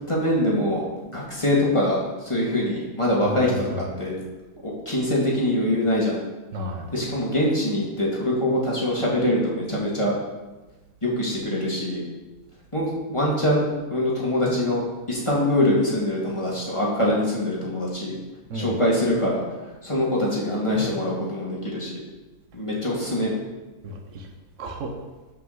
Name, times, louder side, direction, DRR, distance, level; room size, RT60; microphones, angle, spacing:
voice 1, 0.1-0.8 1.1-4.1 4.6-6.2 6.9-10.1 11.0-12.0 12.7-18.1 18.5-19.4 19.8-22.0 22.5-23.4, left 1 dB, 20° left, -5 dB, 2.2 m, -24 dB
voice 2, 3.2-3.9 6.5-6.9 18.5-18.8 23.8-24.3 24.6-24.9, equal, 55° right, 2 dB, 1.4 m, -32 dB
13.5 x 5.6 x 4.0 m, 1.1 s
omnidirectional pair, 1.6 m